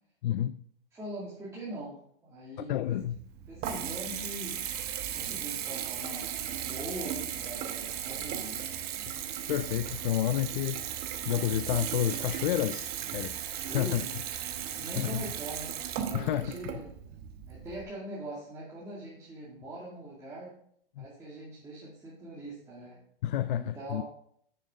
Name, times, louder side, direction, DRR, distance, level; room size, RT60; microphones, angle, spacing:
voice 1, 0.2-0.6 2.7-3.2 9.5-13.4 13.7-14.1 14.8-15.2 16.1-16.6 21.0-21.1 23.2-24.0, left 12 dB, 60° left, 0.5 m, -30 dB
voice 2, 0.9-3.0 3.5-4.6 5.1-8.6 13.6-14.2 14.7-16.9 17.5-20.5 21.0-23.0 23.5-24.0, right 1 dB, 10° right, 2.3 m, -42 dB
Water tap faucet / Bathtub (filling or washing) / Trickle dribble, 3.0-17.8, right 10 dB, 35° right, 1.0 m, -36 dB
10.0 x 6.6 x 3.6 m
hypercardioid pair, 130°, 29 cm